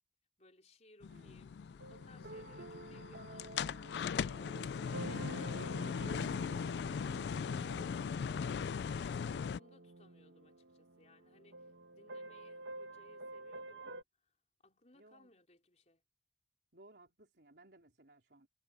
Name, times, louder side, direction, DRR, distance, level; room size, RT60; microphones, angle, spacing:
voice 1, 0.4-1.6 1.9-11.7 12.0-14.3 14.6-16.0, left 2 dB, 40° left, 3.6 m, -64 dB
sound 1, 1.0-9.6, left 6 dB, 70° left, 0.3 m, -39 dB
voice 2, 1.1-1.5 2.3-2.7 14.9-15.3 16.7-18.5, right 2 dB, 65° right, 4.3 m, -62 dB
sound 2, 1.8-14.0, right 2 dB, 80° right, 1.1 m, -50 dB
head